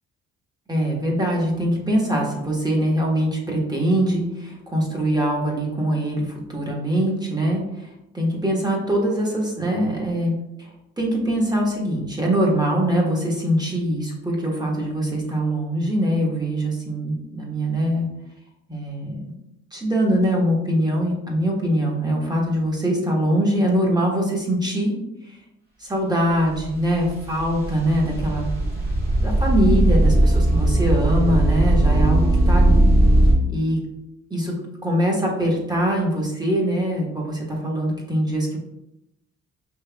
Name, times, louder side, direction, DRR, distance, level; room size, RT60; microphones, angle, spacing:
voice 1, 0.7-7.9 8.1-10.3 10.6-10.7 11.0-18.1 18.7-19.2 19.7-24.9 25.2-25.4 25.8-28.5 29.2-32.9 33.5-33.8 34.3-34.5 34.8-38.6, right 1 dB, 15° right, -2 dB, 1.3 m, -23 dB
sound 1, 26.5-33.3, right 1 dB, 30° right, 1.4 m, -18 dB
5.5 x 3.0 x 2.3 m, 0.87 s
cardioid pair, 90°, 30 cm